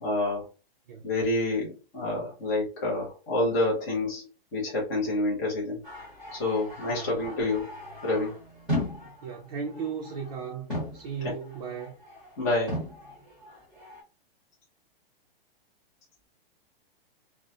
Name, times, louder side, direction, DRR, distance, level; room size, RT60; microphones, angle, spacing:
voice 1, 0.0-0.5 1.0-4.2 4.5-5.8 6.3-7.7 8.0-8.3 11.2-11.3 12.4-12.8, left 2 dB, 20° left, 0.5 m, -28 dB
sound 1, 5.8-10.4 10.7-12.4 12.7-14.0, left 1 dB, 5° right, 1.0 m, -37 dB
voice 2, 9.2-12.0, right 6 dB, 45° right, 0.4 m, -36 dB
2.3 x 2.0 x 2.6 m
hypercardioid pair, 180°, 30 cm